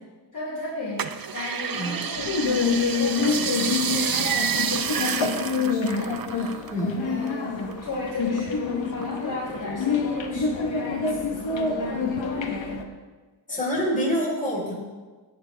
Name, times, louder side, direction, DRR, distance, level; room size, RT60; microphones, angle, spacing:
voice 1, 0.3-6.6 7.0-12.8 13.5-13.8, left 1 dB, 45° left, -7 dB, 3.5 m, -34 dB
sound 1, 1.0-6.8 7.1-8.4 8.8-9.7 10.2-10.3, right 7 dB, 50° right, 0.7 m, -29 dB
voice 2, 1.7-2.0 6.7-7.1 13.5-14.8, left 1 dB, 20° left, -4 dB, 4.2 m, -26 dB
sound 2, 2.2-12.8, left 5 dB, 85° left, 1.3 m, -27 dB
17.0 x 9.8 x 3.4 m, 1.3 s
wide cardioid pair, 110°, 44 cm